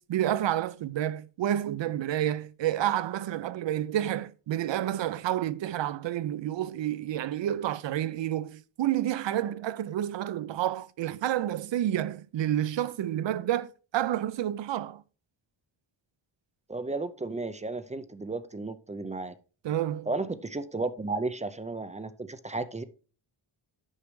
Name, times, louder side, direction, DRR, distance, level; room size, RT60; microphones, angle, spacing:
voice 1, 0.0-15.0 19.6-20.1, right 12 dB, 65° right, 0.6 m, -29 dB
voice 2, 16.7-19.3 20.1-22.8, right 3 dB, 15° right, 0.4 m, -33 dB
9.9 x 6.3 x 3.1 m
wide cardioid pair, 150°, 50 cm